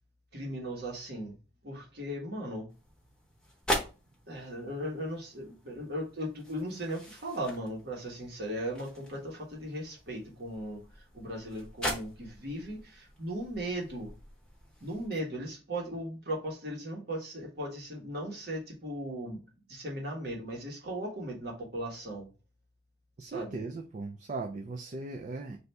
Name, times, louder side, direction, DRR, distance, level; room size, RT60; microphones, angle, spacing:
voice 1, 0.3-1.4 1.6-2.7 4.3-14.1 14.8-19.4 19.7-22.3 23.2-23.6, right 1 dB, 55° right, 1.3 m, -37 dB
sound 1, 2.7-15.2, equal, 5° left, 0.9 m, -41 dB
voice 2, 23.2-25.6, right 3 dB, 40° right, 0.4 m, -38 dB
3.3 x 2.7 x 4.1 m
head